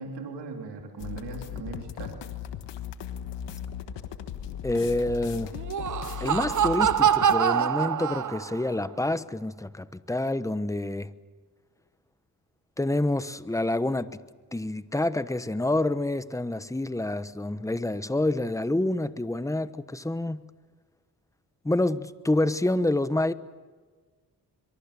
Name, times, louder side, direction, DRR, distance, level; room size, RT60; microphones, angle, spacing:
voice 1, 0.0-2.2, right 4 dB, 80° right, 3.3 m, -39 dB
sound 1, 1.0-7.4, left 9 dB, 85° left, 1.4 m, -37 dB
voice 2, 4.6-5.5 6.2-11.1 12.8-14.2 14.5-20.4 21.6-23.3, left 2 dB, 10° left, 1.1 m, -27 dB
Laughter, 5.5-8.7, right 9 dB, 45° right, 0.9 m, -24 dB
24.0 x 23.0 x 6.8 m
cardioid pair, 60°, 41 cm